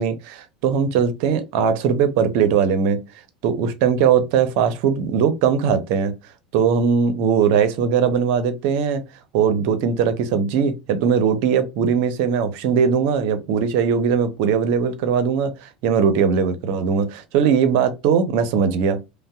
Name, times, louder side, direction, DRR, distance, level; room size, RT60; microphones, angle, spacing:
voice 1, 0.0-3.0 3.4-6.2 6.5-9.0 9.3-19.0, right 7 dB, 55° right, 0.6 m, -20 dB
5.2 x 2.1 x 2.3 m
figure-of-eight pair, 75°, 4 cm